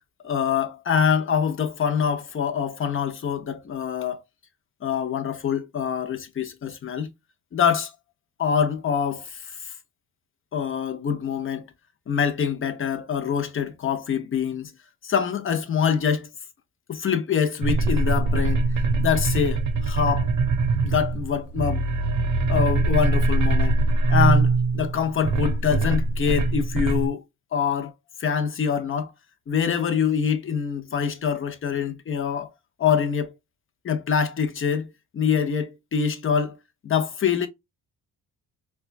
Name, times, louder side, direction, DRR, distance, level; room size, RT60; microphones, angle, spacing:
voice 1, 0.2-4.2 4.8-7.1 7.5-7.9 8.4-9.7 10.5-11.7 12.1-14.7 15.0-16.3 16.9-20.3 20.8-21.9 22.5-23.8 24.1-27.2 27.5-27.9 28.2-29.1 29.5-32.5 32.8-33.3 33.8-36.6 36.8-37.5, left 7 dB, 35° left, 0.7 m, -25 dB
sound 1, 17.6-27.1, right 3 dB, 50° right, 0.7 m, -22 dB
4.3 x 2.3 x 2.4 m
cardioid pair, 105°, 36 cm